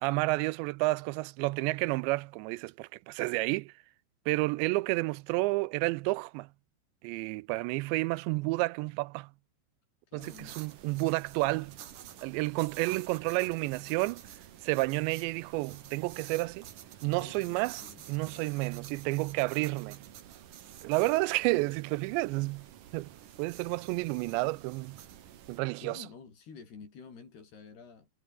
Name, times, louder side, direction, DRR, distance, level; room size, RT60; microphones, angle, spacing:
voice 1, 0.0-3.7 4.3-6.5 7.0-9.3 10.1-11.7 12.2-14.2 14.6-16.7 17.0-17.8 18.1-20.0 20.8-22.6 22.9-23.1 23.4-25.0 25.5-26.0, right 22 dB, 85° right, 2.7 m, -30 dB
voice 2, 10.1-10.6 15.7-16.1 17.0-18.5 21.0-21.2 25.8-28.1, left 5 dB, 60° left, 7.7 m, -51 dB
sound 1, 10.2-25.6, right 10 dB, 55° right, 2.8 m, -50 dB
omnidirectional pair, 5.2 m